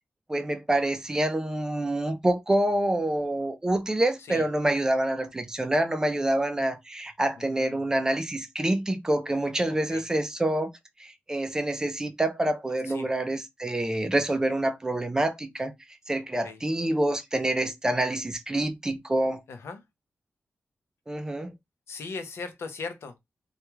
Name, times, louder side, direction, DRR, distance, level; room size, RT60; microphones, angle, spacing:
voice 1, 0.3-10.7 11.0-15.7 16.1-19.4 21.1-21.5, right 1 dB, 15° right, 0.3 m, -27 dB
voice 2, 7.4-7.8 9.9-10.0 12.9-13.1 16.4-16.6 19.5-19.8 21.9-23.2, left 4 dB, 85° left, 0.6 m, -38 dB
2.3 x 2.2 x 2.9 m
wide cardioid pair, 165°, 4 cm